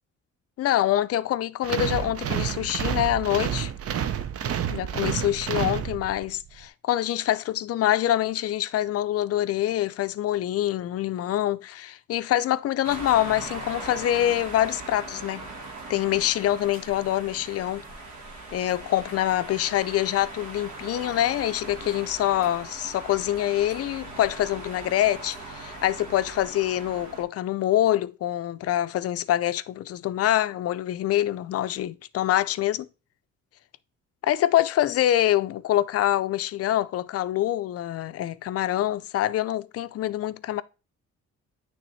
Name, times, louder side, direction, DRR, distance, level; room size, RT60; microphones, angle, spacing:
voice 1, 0.6-3.7 4.7-15.5 15.9-17.9 18.5-32.9 34.2-40.6, left 13 dB, 55° left, 0.4 m, -25 dB
sound 1, 1.6-6.4, right 9 dB, 50° right, 0.6 m, -29 dB
sound 2, 12.8-27.2, right 2 dB, 65° right, 1.4 m, -40 dB
8.9 x 3.5 x 3.1 m
cardioid pair, 90°, 30 cm